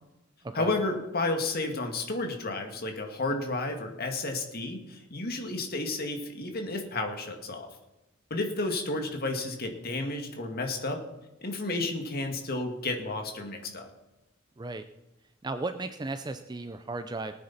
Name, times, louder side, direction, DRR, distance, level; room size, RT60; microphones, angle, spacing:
voice 1, 0.5-7.7 8.3-11.0 11.4-13.9, left 2 dB, 50° left, 4 dB, 2.0 m, -32 dB
voice 2, 15.4-17.3, right 3 dB, 20° right, 9 dB, 0.5 m, -35 dB
19.0 x 9.5 x 4.2 m, 1.0 s
head